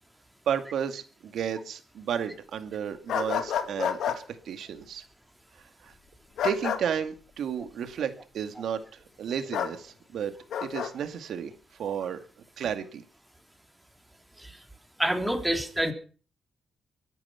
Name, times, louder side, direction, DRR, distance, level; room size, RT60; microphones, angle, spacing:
voice 1, 0.5-5.0 5.8-5.9 6.4-8.8 9.2-10.3 10.6-11.5 11.8-12.2 12.6-13.0, right 8 dB, 75° right, 2.2 m, -32 dB
sound 1, 3.1-4.2 6.4-6.8 9.5-9.7 10.5-10.9, left 8 dB, 80° left, 2.0 m, -29 dB
voice 2, 15.0-15.9, right 1 dB, 5° right, 3.3 m, -27 dB
23.5 x 10.0 x 5.8 m
cardioid pair, 95°, 0 cm